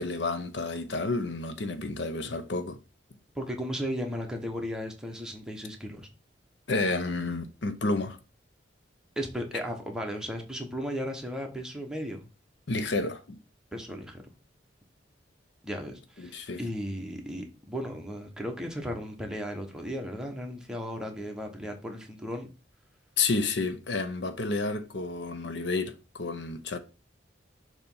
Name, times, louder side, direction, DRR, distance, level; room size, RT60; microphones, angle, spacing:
voice 1, 0.0-2.8 6.7-8.2 12.7-13.4 16.2-16.6 23.2-26.8, left 3 dB, 70° left, 0.7 m, -30 dB
voice 2, 3.3-6.1 9.2-12.3 13.7-14.2 15.6-22.5, equal, 5° right, 1.0 m, -35 dB
6.8 x 3.0 x 5.4 m
head